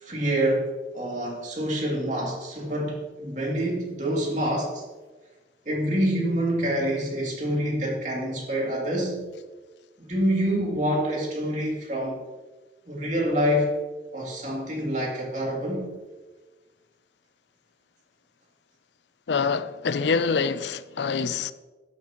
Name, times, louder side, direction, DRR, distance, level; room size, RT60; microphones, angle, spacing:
voice 1, 0.0-4.8 5.7-9.3 10.0-12.2 12.9-13.7 14.1-15.9, equal, 45° right, 2.7 m, -26 dB
voice 2, 19.3-21.5, left 5 dB, 85° left, 0.5 m, -25 dB
12.0 x 10.5 x 3.0 m
head